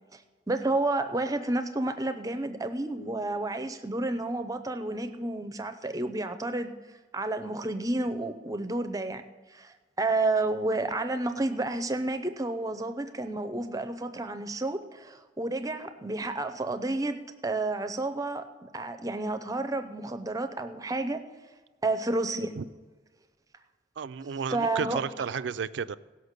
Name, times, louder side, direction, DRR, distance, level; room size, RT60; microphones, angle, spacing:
voice 1, 0.5-6.7 7.1-9.2 9.5-21.2 21.8-22.6 24.5-25.0, right 2 dB, 20° right, 9 dB, 0.6 m, -30 dB
voice 2, 24.0-26.0, right 6 dB, 80° right, 15 dB, 0.4 m, -32 dB
16.5 x 5.7 x 6.6 m, 1.3 s
head